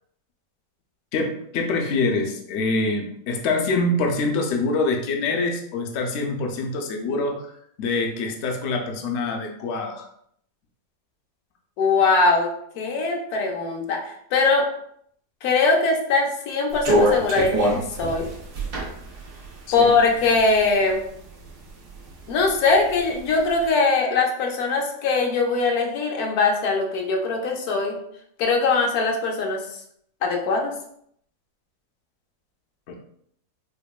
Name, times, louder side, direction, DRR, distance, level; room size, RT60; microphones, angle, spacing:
voice 1, 1.1-7.5 7.8-10.1 19.7-20.0 32.9-33.0, left 3 dB, 85° left, 3 dB, 0.6 m, -25 dB
voice 2, 11.8-12.5 12.8-14.6 15.4-18.3 19.7-21.0 22.3-28.0 28.4-29.6 30.2-30.7, left 3 dB, 70° left, 1 dB, 1.1 m, -21 dB
sound 1, 16.7-20.7 21.1-22.1 22.5-23.5, equal, 70° right, 1.3 m, -24 dB
4.9 x 2.2 x 2.3 m, 0.69 s
omnidirectional pair, 1.8 m